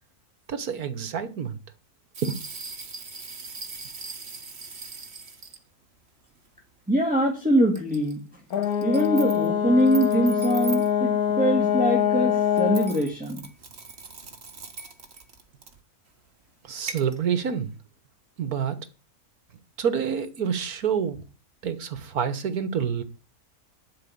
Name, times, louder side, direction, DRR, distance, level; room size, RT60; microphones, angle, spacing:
voice 1, 0.5-1.6 2.2-2.4 16.6-17.7 18.4-18.8 19.8-21.2 21.6-23.0, right 7 dB, 70° right, 1.8 m, -27 dB
sound 1, 2.1-5.6 6.4-6.5 7.8-8.1 8.5-9.5 9.8-10.9 12.6-15.8 16.9-17.2, right 5 dB, 45° right, 1.8 m, -40 dB
voice 2, 6.9-8.2 8.8-11.1 11.4-13.5, equal, 5° right, 2.0 m, -23 dB
Brass instrument, 8.5-13.0, left 9 dB, 75° left, 1.7 m, -24 dB
11.5 x 5.2 x 8.6 m
omnidirectional pair, 1.6 m